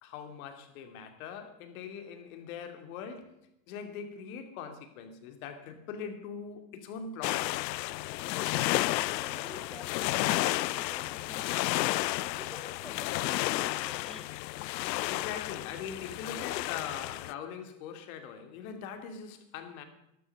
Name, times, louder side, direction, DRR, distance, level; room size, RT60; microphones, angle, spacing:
voice 1, 0.0-3.4 3.7-7.5 15.1-19.8, left 7 dB, 55° left, 2.6 m, -42 dB
sound 1, 7.2-17.3, left 18 dB, 90° left, 0.5 m, -32 dB
voice 2, 8.2-11.8 12.2-14.3, equal, ahead, 0.5 m, -51 dB
13.0 x 12.5 x 6.6 m
supercardioid pair, 150°, 49 cm